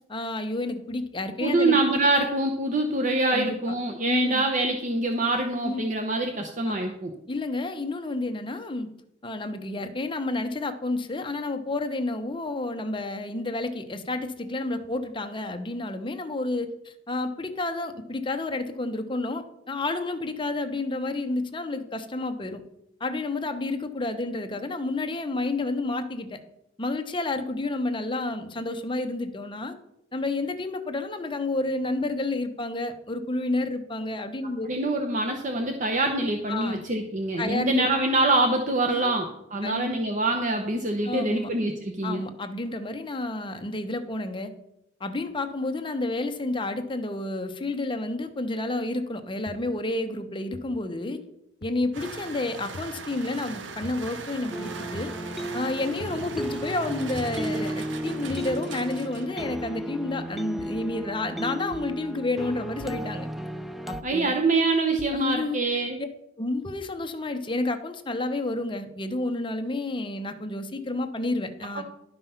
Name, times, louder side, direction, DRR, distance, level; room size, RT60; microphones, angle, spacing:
voice 1, 0.1-1.8 3.3-3.6 4.0-4.4 5.6-5.8 6.7-6.9 7.3-8.9 9.2-22.6 23.0-26.4 26.8-29.7 30.1-34.7 36.5-36.8 37.4-37.9 38.9-39.2 39.6-40.0 41.0-41.5 42.0-44.5 45.0-51.2 51.6-55.1 55.5-63.3 63.9-64.3 65.1-66.1 66.4-71.8, left 2 dB, 25° left, 7 dB, 0.9 m, -30 dB
voice 2, 1.4-7.1 34.7-42.2 64.0-66.0 71.7-71.8, right 2 dB, 45° right, 3 dB, 0.9 m, -25 dB
sound 1, 49.5-49.6 50.5-50.6 51.6-51.7 52.7-52.9 53.8-54.0 54.9-55.1 56.0-56.2 57.1-57.4 58.3-58.5 59.4-59.6 60.6-60.8 61.7-61.9 62.8-63.0 63.9-64.1 65.0-65.2, left 2 dB, 70° left, 0.8 m, -41 dB
sound 2, 51.9-59.6, right 4 dB, 85° right, 0.9 m, -40 dB
sound 3, 54.5-64.0, right 1 dB, ahead, 0.4 m, -34 dB
11.5 x 5.5 x 5.7 m, 0.80 s
head